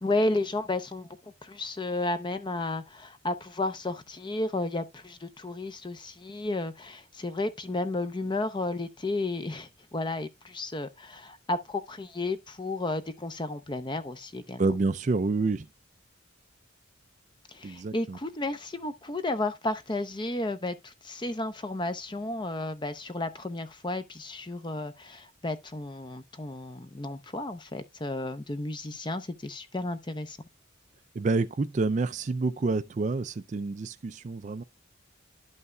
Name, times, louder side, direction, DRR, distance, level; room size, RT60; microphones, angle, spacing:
voice 1, 0.0-14.6 17.5-30.4, left 2 dB, 25° left, 0.6 m, -33 dB
voice 2, 14.6-15.7 17.6-18.2 31.1-34.6, right 3 dB, 35° right, 0.3 m, -28 dB
12.0 x 5.4 x 2.2 m
head